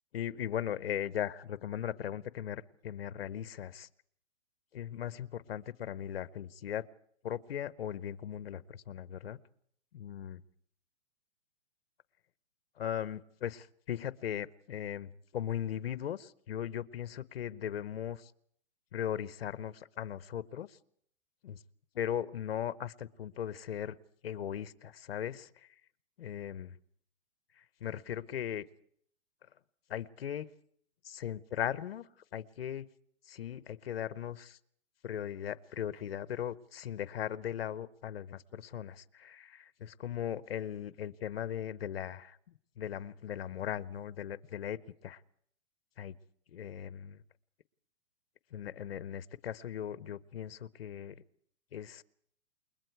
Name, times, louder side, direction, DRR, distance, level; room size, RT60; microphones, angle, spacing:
voice 1, 0.1-3.9 4.7-6.9 7.2-9.4 9.9-10.4 12.8-18.3 18.9-20.8 21.4-21.6 21.9-24.0 24.2-25.7 26.2-26.8 27.6-28.7 29.9-30.5 31.0-32.1 32.3-32.9 33.3-34.6 35.0-45.2 46.0-46.1 46.5-47.2 48.5-51.2 51.7-52.0, left 10 dB, 60° left, 17 dB, 0.9 m, -38 dB
28.5 x 21.5 x 4.7 m, 0.66 s
hypercardioid pair, 175°, 34 cm